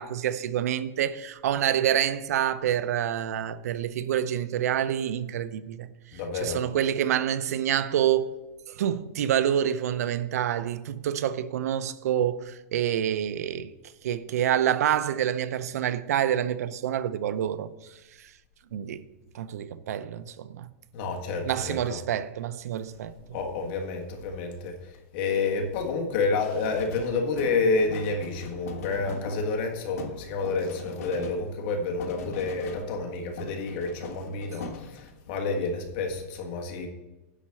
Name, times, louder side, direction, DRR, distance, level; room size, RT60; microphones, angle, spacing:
voice 1, 0.0-5.9 6.3-8.3 8.7-13.7 14.0-17.7 18.7-19.0 19.3-20.7 21.4-23.1, right 10 dB, 75° right, 0.6 m, -27 dB
voice 2, 6.1-6.6 20.9-22.0 23.3-24.8 25.1-36.9, left 4 dB, 45° left, 1.7 m, -29 dB
sound 1, 26.6-33.1 33.4-35.3, left 4 dB, 75° left, 1.5 m, -41 dB
10.0 x 4.2 x 7.6 m
supercardioid pair, 160°, 8 cm